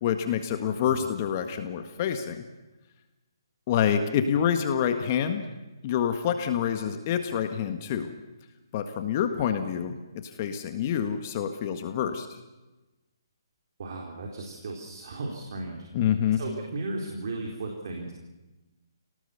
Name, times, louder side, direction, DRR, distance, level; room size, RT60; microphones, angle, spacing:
voice 1, 0.0-2.5 3.7-5.4 5.8-8.1 8.7-10.0 10.4-12.3 15.9-16.4, left 8 dB, 35° left, 7 dB, 1.7 m, -27 dB
voice 2, 13.8-15.9 16.3-18.1, right 2 dB, 55° right, 1 dB, 4.1 m, -35 dB
28.0 x 18.5 x 7.1 m, 1.1 s
hypercardioid pair, 155°, 2 cm